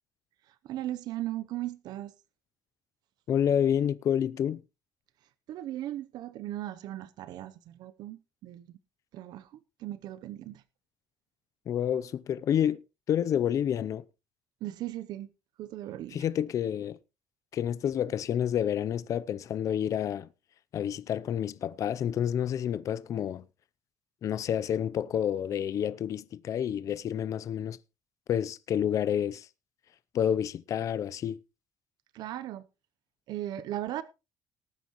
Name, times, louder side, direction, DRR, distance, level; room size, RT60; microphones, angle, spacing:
voice 1, 0.5-2.1 5.5-8.7 9.1-10.6 14.6-15.3 15.6-16.3 32.1-32.6 33.3-34.0, right 13 dB, 70° right, 0.8 m, -37 dB
voice 2, 3.3-4.6 11.7-12.8 13.1-14.0 16.1-17.0 17.5-20.3 20.7-23.4 24.2-27.8 28.3-29.5 30.1-31.4, left 9 dB, 50° left, 0.6 m, -29 dB
19.0 x 9.2 x 3.1 m
cardioid pair, 135°, 7 cm